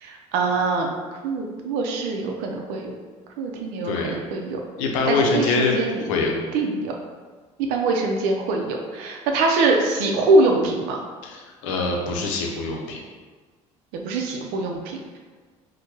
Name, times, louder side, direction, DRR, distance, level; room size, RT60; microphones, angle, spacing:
voice 1, 0.0-0.9 1.2-2.9 3.4-4.6 5.1-6.9 7.7-11.0 13.9-15.2, right 3 dB, 75° right, 1 dB, 0.5 m, -23 dB
voice 2, 3.8-4.2 4.8-6.3 11.2-13.0, left 3 dB, 80° left, 1 dB, 0.6 m, -24 dB
4.3 x 2.2 x 2.9 m, 1.4 s
hypercardioid pair, 65°, 16 cm